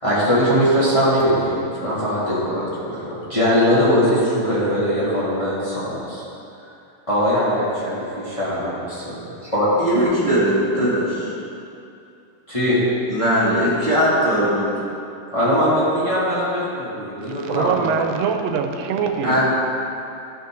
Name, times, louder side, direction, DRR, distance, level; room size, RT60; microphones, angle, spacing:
voice 1, 0.0-6.2 7.1-9.7 12.5-12.8 15.3-17.9, equal, 10° left, -11 dB, 1.9 m, -21 dB
voice 2, 9.8-11.3 13.1-14.7 19.2-19.4, equal, 15° right, -10 dB, 2.1 m, -19 dB
voice 3, 17.4-19.4, right 6 dB, 85° right, 5 dB, 2.4 m, -23 dB
14.0 x 5.8 x 3.8 m, 2.6 s
omnidirectional pair, 3.9 m